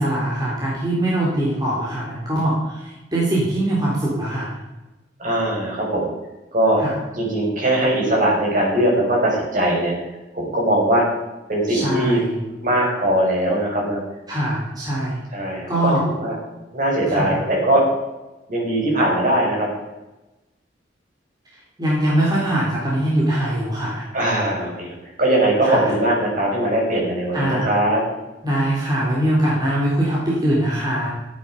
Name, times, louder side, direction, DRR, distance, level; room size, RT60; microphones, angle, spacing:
voice 1, 0.0-4.6 6.8-7.0 11.7-12.3 14.3-15.2 15.7-16.0 17.1-17.4 21.8-24.0 25.6-25.9 27.3-27.7 28.4-31.1, right 1 dB, 25° right, -6 dB, 3.9 m, -22 dB
voice 2, 5.2-6.1 6.5-6.8 7.1-9.9 10.3-11.1 11.5-12.2 12.6-14.0 15.3-16.3 16.7-17.8 18.5-19.7 24.1-28.0, right 1 dB, 50° right, -3 dB, 5.9 m, -20 dB
15.5 x 9.6 x 5.0 m, 1.0 s
head